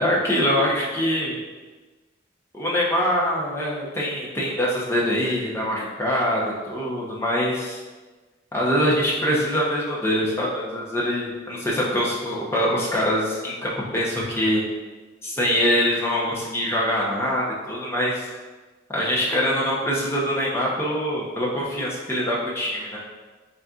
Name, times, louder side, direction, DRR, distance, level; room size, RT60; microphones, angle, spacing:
voice 1, 0.0-1.4 2.5-7.8 8.5-14.6 15.2-18.3 18.9-23.0, equal, 15° left, -5 dB, 0.7 m, -24 dB
4.1 x 3.7 x 2.4 m, 1.3 s
head